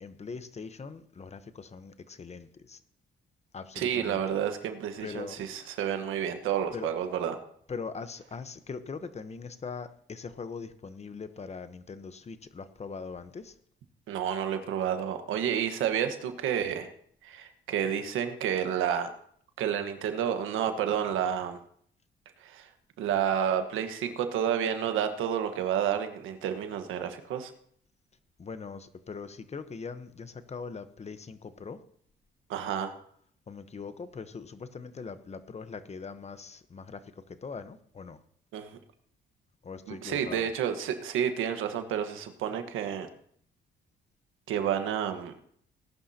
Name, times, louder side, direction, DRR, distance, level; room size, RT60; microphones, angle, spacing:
voice 1, 0.0-2.8 3.5-4.2 5.0-5.5 6.7-6.9 7.7-13.6 28.4-31.8 33.5-38.2 39.6-40.5, left 5 dB, 35° left, 1.0 m, -41 dB
voice 2, 3.7-7.4 14.1-16.9 17.2-19.1 19.6-21.6 22.4-22.7 23.0-27.5 32.5-32.9 38.5-38.8 39.9-43.1 44.5-45.3, right 9 dB, 90° right, 1.4 m, -30 dB
18.5 x 11.5 x 2.9 m
cardioid pair, 90°, 20 cm